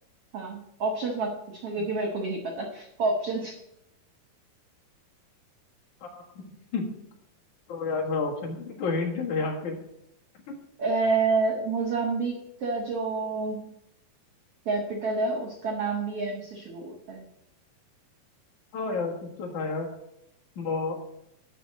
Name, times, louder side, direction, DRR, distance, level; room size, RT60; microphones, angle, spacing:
voice 1, 0.3-3.5 10.8-12.3 12.6-13.7 14.6-17.2, right 3 dB, 70° right, 3 dB, 1.4 m, -28 dB
voice 2, 6.0-6.4 6.7-6.9 7.7-9.8 10.5-10.6 18.7-19.9 20.6-21.0, left 4 dB, 60° left, -1 dB, 2.9 m, -30 dB
12.0 x 4.1 x 7.5 m, 0.80 s
omnidirectional pair, 4.3 m